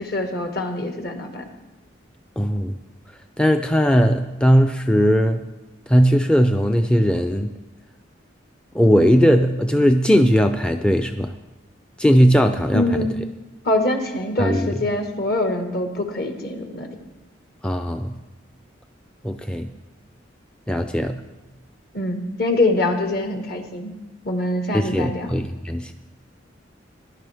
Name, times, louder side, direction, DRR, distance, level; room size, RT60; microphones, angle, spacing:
voice 1, 0.0-1.5 12.7-13.1 13.6-17.0 21.9-23.9 24.2-25.3, left 2 dB, 55° left, 4 dB, 1.6 m, -24 dB
voice 2, 2.4-2.8 3.4-5.5 5.9-7.6 8.7-11.3 12.0-13.1 14.4-14.7 17.6-18.2 19.2-19.7 20.7-21.2 24.7-25.9, equal, 5° left, 6 dB, 0.4 m, -18 dB
20.0 x 11.0 x 3.5 m, 1.1 s
head